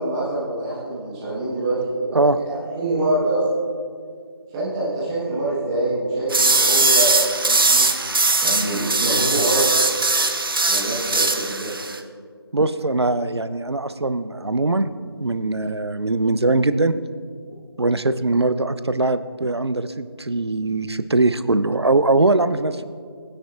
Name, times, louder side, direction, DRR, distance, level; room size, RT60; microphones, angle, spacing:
voice 1, 0.0-3.6 4.5-9.7 10.1-10.4 10.6-11.7, right 1 dB, 10° right, -8 dB, 1.4 m, -25 dB
sound 1, 6.3-12.0, right 3 dB, 60° right, 0.9 m, -20 dB
voice 2, 12.5-14.9 15.2-17.0 17.8-22.8, right 2 dB, 85° right, 12 dB, 0.6 m, -21 dB
19.5 x 9.8 x 2.5 m, 2.1 s
figure-of-eight pair, 160°, 13 cm